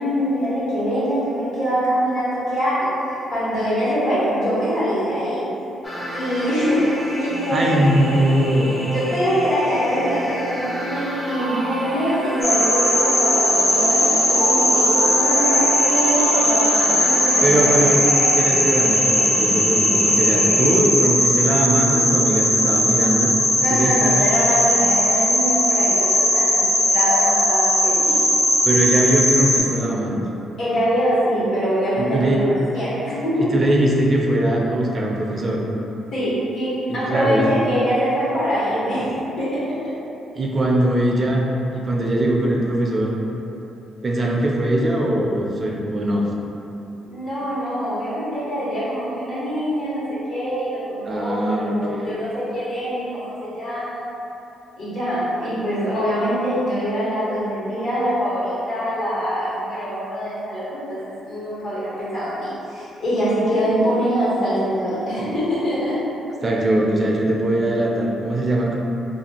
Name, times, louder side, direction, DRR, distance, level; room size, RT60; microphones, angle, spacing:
voice 1, 0.0-5.5 6.1-6.9 7.2-8.2 8.9-18.5 23.6-28.2 30.6-33.5 36.1-39.9 47.0-50.0 50.3-54.1 54.8-66.0, equal, 65° left, -10 dB, 1.2 m, -24 dB
sound 1, 5.8-20.8, right 1 dB, 20° left, 0.5 m, -28 dB
voice 2, 7.5-8.7 17.4-18.0 18.4-23.3 23.7-24.0 28.6-30.2 32.0-32.4 33.4-35.6 36.9-37.5 40.3-41.4 41.7-43.1 44.0-46.2 51.1-52.2 66.4-68.8, right 1 dB, 35° right, -2 dB, 0.4 m, -21 dB
sound 2, 12.4-29.6, left 1 dB, 45° left, 0.9 m, -18 dB
2.5 x 2.3 x 2.8 m, 2.9 s
cardioid pair, 90°, 0 cm